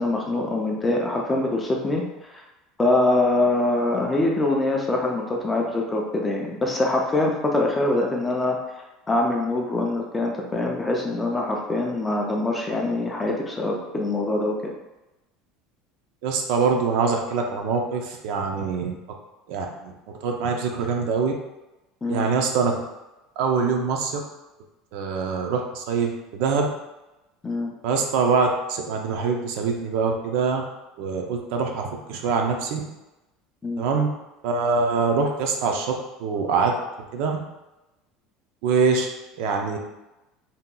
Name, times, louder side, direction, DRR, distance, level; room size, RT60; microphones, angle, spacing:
voice 1, 0.0-2.0 2.8-8.6 9.1-14.7 22.0-22.3 27.4-27.7 33.6-33.8, left 2 dB, 10° left, 0 dB, 0.3 m, -24 dB
voice 2, 16.2-19.0 19.5-19.9 20.2-21.3 22.1-22.8 23.4-24.1 24.9-26.7 27.8-30.6 31.0-32.8 33.8-34.1 34.4-35.9 36.2-36.7 37.1-37.4 38.6-39.1 39.4-39.8, right 5 dB, 60° right, 2 dB, 0.5 m, -24 dB
2.7 x 2.2 x 3.7 m, 0.99 s
cardioid pair, 175°, 0 cm